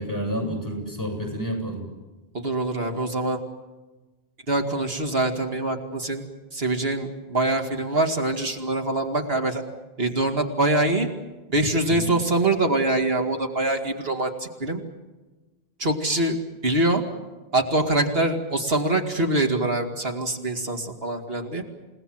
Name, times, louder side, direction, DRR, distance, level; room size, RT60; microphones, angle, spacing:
voice 1, 0.0-1.8 11.9-12.1, equal, 20° left, 2 dB, 8.0 m, -29 dB
voice 2, 2.3-3.4 4.5-6.2 6.5-9.6 10.0-11.1 11.5-14.8 15.8-16.4 16.6-17.0 17.5-21.6, right 2 dB, 70° right, 4 dB, 2.5 m, -24 dB
29.5 x 18.5 x 7.7 m, 1.2 s
omnidirectional pair, 1.0 m